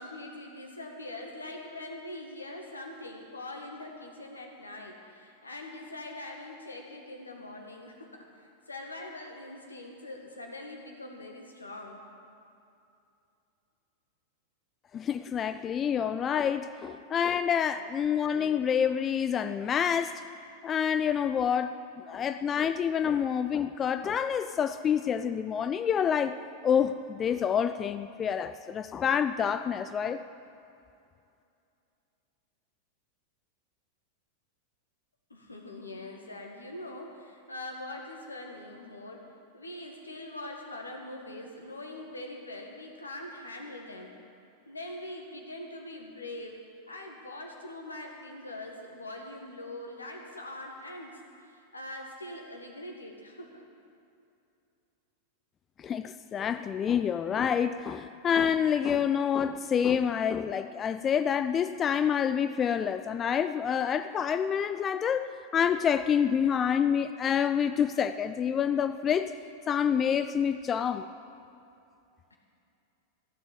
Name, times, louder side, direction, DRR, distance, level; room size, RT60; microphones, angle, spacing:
voice 1, 0.0-12.0 35.3-39.3 39.5-44.1 44.7-46.6 46.9-53.7 72.3-72.4, left 1 dB, 80° left, 1 dB, 1.9 m, -43 dB
voice 2, 14.9-20.2 20.6-26.4 26.6-30.2 55.8-69.3 69.7-71.1, left 8 dB, 25° left, 11 dB, 0.4 m, -27 dB
15.0 x 7.2 x 9.3 m, 2.6 s
figure-of-eight pair, 90°, 0 cm